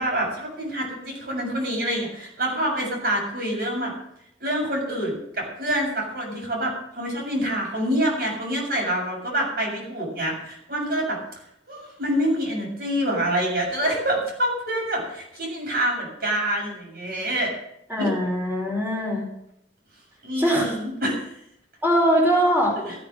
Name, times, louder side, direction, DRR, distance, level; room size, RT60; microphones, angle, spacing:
voice 1, 0.0-3.9 4.4-11.2 11.7-17.5 18.0-18.1 20.2-21.3 22.9-23.0, right 1 dB, 55° right, -1 dB, 7.2 m, -26 dB
voice 2, 17.9-19.2 20.4-20.7 21.8-22.7, equal, 10° right, -5 dB, 4.9 m, -21 dB
15.5 x 9.7 x 6.6 m, 0.76 s
head